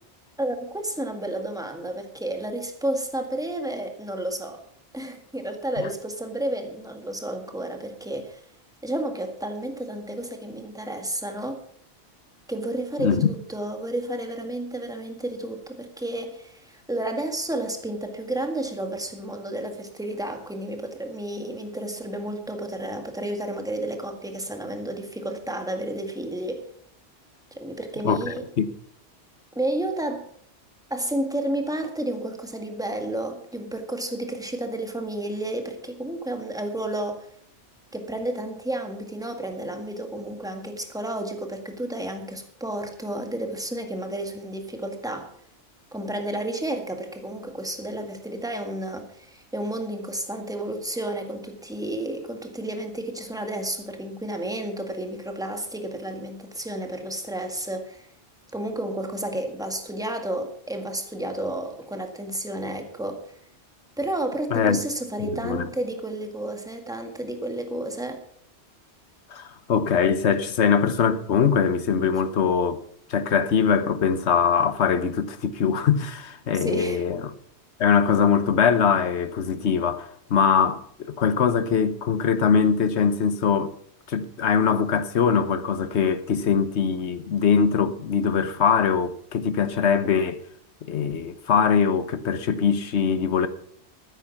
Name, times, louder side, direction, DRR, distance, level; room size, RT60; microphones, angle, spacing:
voice 1, 0.4-4.6 4.9-8.4 8.8-11.6 12.5-26.6 27.5-28.5 29.6-30.2 30.9-37.3 37.9-45.3 45.9-58.1 58.5-63.2 64.0-68.2 76.5-77.0, right 1 dB, 5° right, 1.9 m, -31 dB
voice 2, 28.0-28.7 64.5-64.8 65.2-65.7 69.3-72.8 73.1-77.3 77.8-83.7 84.1-90.4 90.9-93.5, left 6 dB, 75° left, 1.3 m, -22 dB
13.0 x 9.9 x 5.9 m
omnidirectional pair, 1.2 m